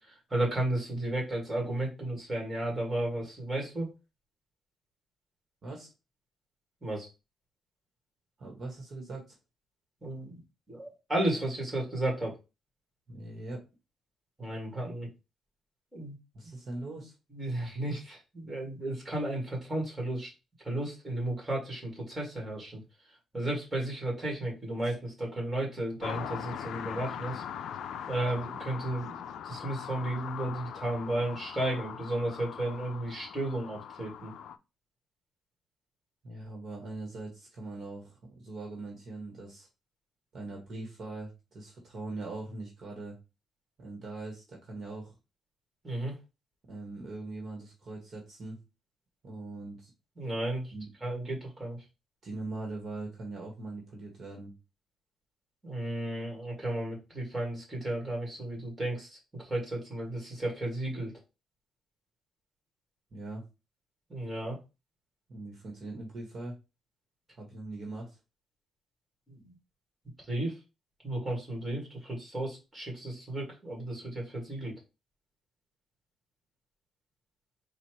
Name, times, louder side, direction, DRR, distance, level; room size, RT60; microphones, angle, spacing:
voice 1, 0.3-3.9 6.8-7.1 10.0-10.3 10.7-12.4 14.4-15.1 15.9-16.2 17.3-20.3 20.6-22.8 23.3-27.4 28.1-34.3 45.8-46.1 50.2-50.7 51.0-51.8 55.6-59.1 59.4-61.1 64.1-64.6 69.3-69.5 70.3-70.6 71.0-74.7, right 1 dB, 10° right, -1 dB, 1.9 m, -33 dB
voice 2, 8.4-9.3 13.1-13.6 16.3-17.1 24.8-24.9 36.2-39.7 40.3-43.2 43.8-45.1 46.7-48.6 49.2-49.9 50.7-50.9 52.2-54.5 63.1-63.4 65.3-66.6 67.3-68.2, right 2 dB, 40° right, 0 dB, 1.4 m, -41 dB
sound 1, 26.0-34.5, left 9 dB, 75° left, 0.4 m, -41 dB
4.2 x 2.5 x 4.7 m, 0.27 s
cardioid pair, 160°, 0 cm